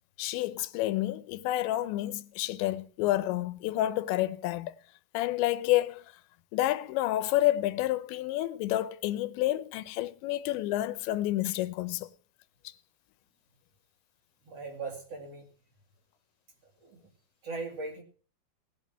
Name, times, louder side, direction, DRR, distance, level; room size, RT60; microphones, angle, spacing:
voice 1, 0.2-4.7 5.1-6.0 6.5-12.1 12.6-12.7, left 15 dB, 90° left, 3.1 m, -29 dB
voice 2, 14.4-15.5 16.8-17.1 17.4-18.0, right 3 dB, 40° right, 2.8 m, -39 dB
19.0 x 7.4 x 7.3 m
omnidirectional pair, 5.0 m